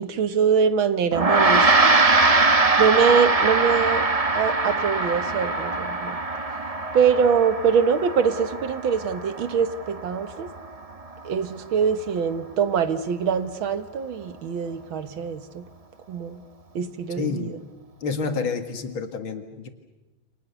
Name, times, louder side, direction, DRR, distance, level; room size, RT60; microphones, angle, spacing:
voice 1, 0.0-1.9 2.8-4.0 4.3-6.2 6.9-10.5 11.2-15.7 16.1-16.4 16.8-17.5, right 6 dB, 80° right, 11 dB, 2.1 m, -23 dB
Gong, 1.1-10.7, right 3 dB, 25° right, 1.0 m, -22 dB
voice 2, 17.2-17.6 18.0-19.7, left 5 dB, 75° left, 7 dB, 2.7 m, -29 dB
29.5 x 26.5 x 7.0 m, 1.1 s
omnidirectional pair, 2.2 m